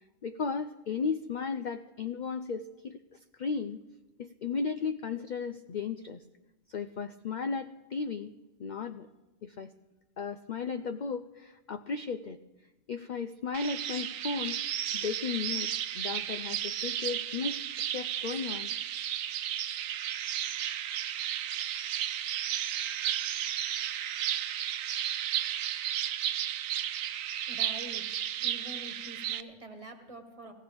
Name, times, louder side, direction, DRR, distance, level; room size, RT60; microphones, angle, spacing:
voice 1, 0.2-3.8 4.2-6.2 6.7-8.3 8.6-9.1 9.4-9.7 10.2-12.4 12.9-14.6 14.9-18.7, left 5 dB, 65° left, 9 dB, 0.4 m, -35 dB
sound 1, 13.5-29.4, right 11 dB, 85° right, 1.0 m, -33 dB
voice 2, 27.5-28.1 28.4-30.5, right 1 dB, 25° right, 4 dB, 1.3 m, -46 dB
18.5 x 16.0 x 3.4 m, 1.1 s
omnidirectional pair, 1.3 m